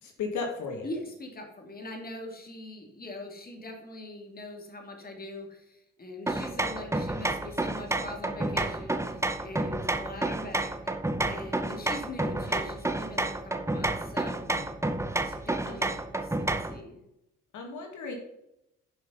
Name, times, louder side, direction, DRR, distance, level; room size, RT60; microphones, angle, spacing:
voice 1, 0.0-0.9 14.5-14.7 15.6-15.8 17.5-18.1, left 4 dB, 75° left, 2 dB, 2.2 m, -35 dB
voice 2, 0.8-10.9 11.2-14.5 15.2-17.0, left 2 dB, 30° left, 2 dB, 2.8 m, -42 dB
sound 1, 6.3-16.8, right 2 dB, 10° right, 0.8 m, -30 dB
10.0 x 5.9 x 5.7 m, 0.84 s
cardioid pair, 90°, 30 cm